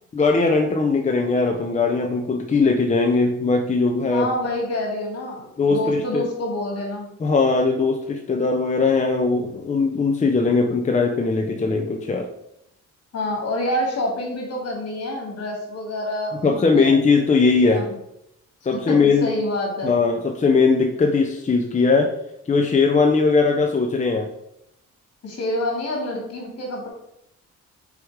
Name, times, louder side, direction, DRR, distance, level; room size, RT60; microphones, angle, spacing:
voice 1, 0.1-4.3 5.6-6.2 7.2-12.3 16.4-17.9 18.7-19.3 19.8-22.1 22.5-24.3, left 4 dB, 25° left, 3 dB, 0.7 m, -19 dB
voice 2, 4.1-7.1 13.1-16.9 17.6-17.9 18.7-20.0 25.2-26.9, left 1 dB, 55° left, 0 dB, 2.7 m, -27 dB
5.0 x 4.8 x 4.9 m, 0.79 s
cardioid pair, 90°, 30 cm